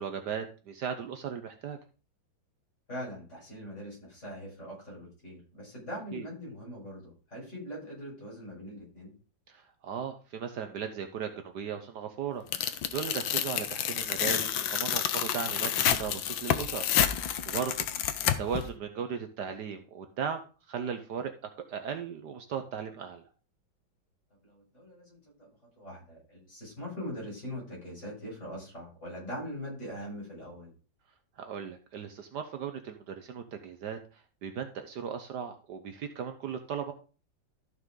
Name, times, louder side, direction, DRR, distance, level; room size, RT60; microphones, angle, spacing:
voice 1, 0.0-1.8 6.1-6.3 9.5-17.9 18.2-23.2 31.4-36.9, right 7 dB, 65° right, 7 dB, 1.3 m, -37 dB
voice 2, 2.9-9.1 24.4-25.5 25.8-30.7, equal, 35° left, -5 dB, 6.5 m, -42 dB
Tearing, 12.5-18.6, left 10 dB, 85° left, 1.6 m, -29 dB
13.5 x 6.3 x 3.8 m, 0.35 s
omnidirectional pair, 2.1 m